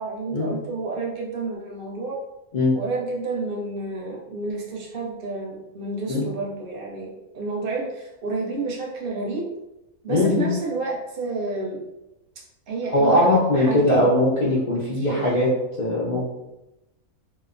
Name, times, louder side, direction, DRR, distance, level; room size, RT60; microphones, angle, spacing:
voice 1, 0.0-2.2 2.7-9.5 10.0-11.8 12.7-14.1 15.0-15.3, right 3 dB, 60° right, -2 dB, 0.6 m, -30 dB
voice 2, 10.1-10.5 12.9-15.5 15.8-16.2, left 1 dB, 70° left, -8 dB, 0.4 m, -20 dB
2.9 x 2.0 x 2.4 m, 0.94 s
omnidirectional pair, 1.4 m